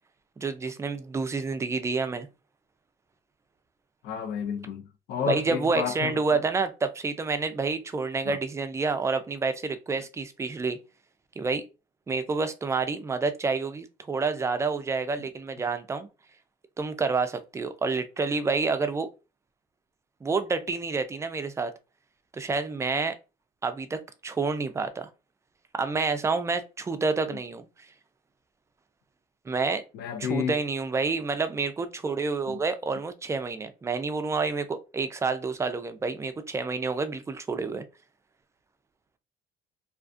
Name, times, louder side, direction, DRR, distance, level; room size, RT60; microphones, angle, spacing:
voice 1, 0.4-2.3 5.3-10.8 11.4-11.6 12.1-16.1 16.8-19.1 20.2-21.7 22.3-23.1 23.6-25.1 25.8-27.7 29.5-29.8 30.2-37.8, right 4 dB, 15° right, 0.3 m, -28 dB
voice 2, 4.0-6.2 8.2-8.4 27.3-27.4 29.9-30.5 32.5-32.6, left 8 dB, 75° left, 0.5 m, -31 dB
2.4 x 2.3 x 2.5 m
cardioid pair, 110°, 17 cm